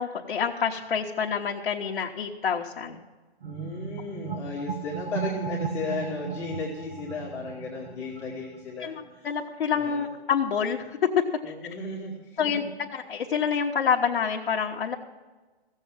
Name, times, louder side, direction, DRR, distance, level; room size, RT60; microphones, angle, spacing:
voice 1, 0.0-3.0 8.8-8.9 9.2-11.0 11.5-11.6 12.4-15.0, left 7 dB, 60° left, -2 dB, 1.1 m, -27 dB
voice 2, 3.4-9.3 9.7-10.1 11.4-12.7, left 3 dB, 10° left, -8 dB, 1.1 m, -35 dB
sound 1, 3.4-8.7, right 6 dB, 75° right, 1.4 m, -35 dB
15.5 x 7.4 x 7.3 m, 1.3 s
hypercardioid pair, 165°, 32 cm